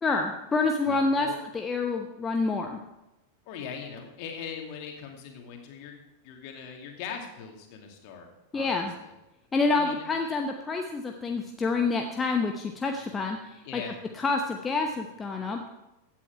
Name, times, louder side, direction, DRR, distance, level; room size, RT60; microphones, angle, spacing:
voice 1, 0.0-1.3 1.5-2.8 8.5-8.9 9.5-13.8 14.2-15.7, left 3 dB, 15° left, 3 dB, 0.9 m, -27 dB
voice 2, 0.8-1.4 3.5-6.0 6.2-8.3 8.5-9.1 9.7-10.3 13.6-13.9, left 7 dB, 45° left, 2 dB, 2.4 m, -40 dB
15.5 x 8.6 x 4.7 m, 0.97 s
figure-of-eight pair, 90°, 0 cm